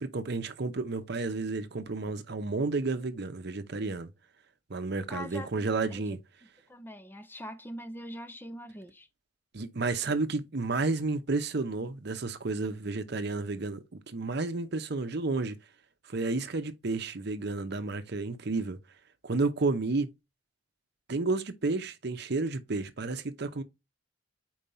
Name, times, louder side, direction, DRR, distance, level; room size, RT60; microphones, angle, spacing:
voice 1, 0.0-4.1 4.7-6.2 9.5-15.6 16.1-18.8 19.2-20.1 21.1-23.6, right 3 dB, 55° right, 0.7 m, -31 dB
voice 2, 5.1-6.0 6.7-9.1, equal, 10° left, 0.4 m, -42 dB
4.7 x 4.3 x 5.4 m
head